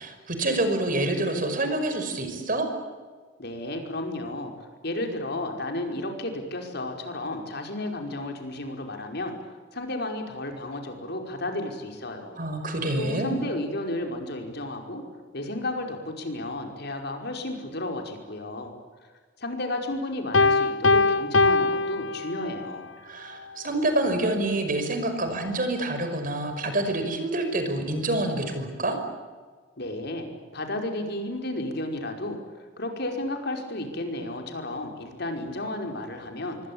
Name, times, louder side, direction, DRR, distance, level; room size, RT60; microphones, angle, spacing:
voice 1, 0.0-2.7 12.4-13.4 23.0-29.0, right 2 dB, 45° right, 7 dB, 5.7 m, -27 dB
voice 2, 3.4-4.5 4.8-9.4 9.7-12.4 13.0-15.0 15.3-18.7 19.4-22.9 29.8-30.3 30.5-32.4 32.8-36.6, left 1 dB, 60° left, 4 dB, 5.2 m, -32 dB
Piano, 20.3-22.7, left 3 dB, 75° left, 0.9 m, -22 dB
26.5 x 23.5 x 8.9 m, 1.4 s
head